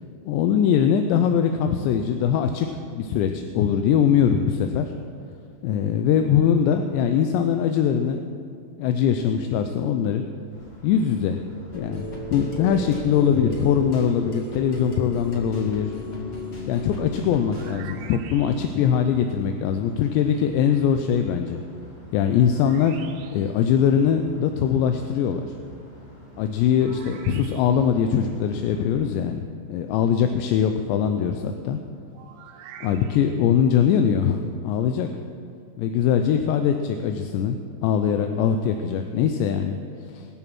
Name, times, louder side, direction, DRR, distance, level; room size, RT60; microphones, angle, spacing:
voice 1, 0.2-2.7 3.0-4.9 5.6-8.3 8.8-10.2 10.8-11.4 11.7-15.9 16.7-21.6 22.1-23.0 23.3-25.5 26.4-31.8 32.8-35.1 35.8-40.3, left 8 dB, 85° left, 6 dB, 2.8 m, -22 dB
sound 1, 10.5-28.9, equal, 65° left, 6.6 m, -48 dB
sound 2, 11.7-17.7, left 2 dB, 45° left, 1.3 m, -34 dB
sound 3, 17.3-19.0 22.5-23.7 26.8-28.0 32.1-33.5, right 8 dB, 90° right, 3.1 m, -46 dB
21.5 x 7.3 x 6.1 m, 2.3 s
omnidirectional pair, 5.1 m